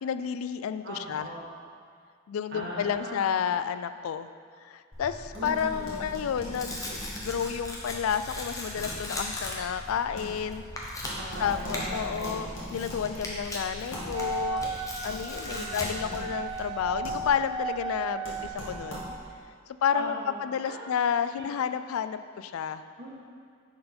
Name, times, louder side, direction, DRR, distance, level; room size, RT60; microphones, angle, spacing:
voice 1, 0.0-1.3 2.3-4.3 4.6-7.0 7.2-10.6 10.9-11.0 11.4-14.8 15.0-19.0 19.8-22.8, left 7 dB, 90° left, 12 dB, 0.3 m, -31 dB
voice 2, 0.8-1.5 2.5-3.3 5.3-6.1 11.0-12.5 15.3-16.2 19.9-20.3 20.6-20.8 21.3-21.5 23.0-23.1, right 1 dB, 55° right, -4 dB, 1.6 m, -39 dB
Tearing, 4.9-17.3, left 1 dB, 15° left, 1.0 m, -39 dB
sound 1, 5.3-19.4, left 1 dB, 70° left, 2.0 m, -42 dB
Wind instrument woodwind instrument, 14.1-19.2, right 4 dB, 20° right, 0.3 m, -35 dB
10.0 x 4.4 x 4.3 m, 2.2 s
head